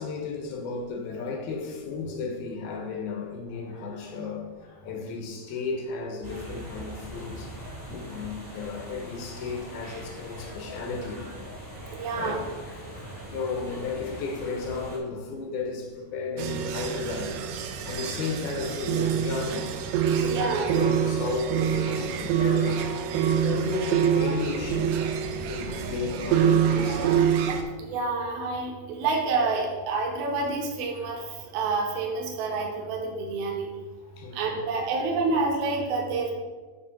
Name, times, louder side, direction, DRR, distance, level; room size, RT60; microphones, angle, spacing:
voice 1, 0.0-7.6 7.9-11.2 12.1-22.9 23.2-25.1 25.4-27.2 34.0-35.2, left 4 dB, 80° left, 2.5 m, -34 dB
sound 1, 6.2-15.0, equal, 15° right, 0.5 m, -41 dB
voice 2, 11.9-12.4 14.8-14.9 20.2-20.7 27.8-33.7 34.3-36.3, right 3 dB, 75° right, 2.7 m, -28 dB
sound 2, 16.4-27.6, right 8 dB, 90° right, 2.8 m, -26 dB
9.4 x 3.3 x 5.9 m
omnidirectional pair, 4.6 m